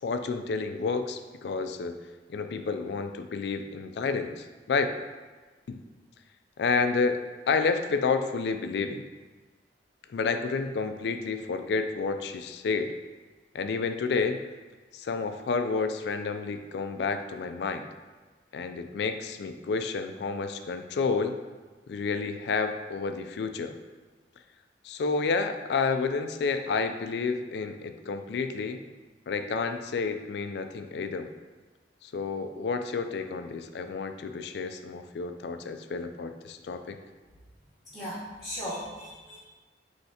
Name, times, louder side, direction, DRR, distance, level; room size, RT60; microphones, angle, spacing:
voice 1, 0.0-1.9 2.3-4.9 5.7-5.8 6.6-7.2 7.5-9.0 10.1-13.0 13.5-14.4 14.9-17.9 18.5-21.4 21.9-23.8 24.8-28.8 29.3-31.3 32.0-37.0, left 4 dB, 65° left, 8 dB, 0.3 m, -30 dB
voice 2, 37.9-39.4, equal, ahead, -14 dB, 1.1 m, -37 dB
5.5 x 3.2 x 2.8 m, 1.3 s
head